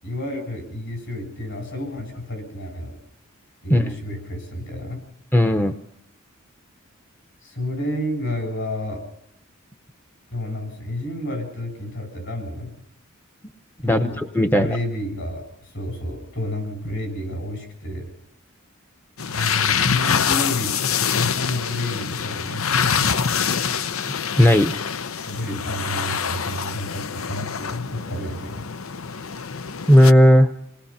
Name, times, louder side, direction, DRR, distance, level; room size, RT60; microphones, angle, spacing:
voice 1, 0.0-3.0 3.6-5.0 7.4-9.0 10.3-12.8 13.8-14.2 14.5-18.1 19.3-20.7 21.1-23.2 25.2-28.7, left 1 dB, 60° left, 7 dB, 7.9 m, -30 dB
voice 2, 5.3-5.7 13.8-14.7 24.4-24.7 29.9-30.5, equal, 10° left, 6 dB, 0.8 m, -15 dB
sound 1, 19.2-30.1, left 7 dB, 80° left, 0.8 m, -25 dB
28.0 x 19.5 x 5.8 m, 0.76 s
head